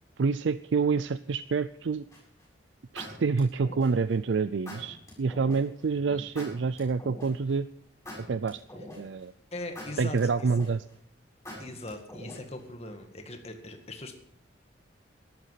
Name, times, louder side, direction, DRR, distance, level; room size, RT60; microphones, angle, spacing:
voice 1, 0.2-2.1 2.9-7.7 8.2-8.6 9.0-9.3 10.0-10.9, right 4 dB, 75° right, 15 dB, 0.4 m, -27 dB
sound 1, 2.1-2.4 3.0-4.1 4.6-5.6 6.3-7.5 8.0-9.2 9.7-10.9 11.4-12.6, left 1 dB, 15° left, 7.6 m, -43 dB
voice 2, 9.5-10.5 11.6-14.1, left 2 dB, 35° left, 5 dB, 2.0 m, -40 dB
13.5 x 11.5 x 5.8 m, 0.70 s
head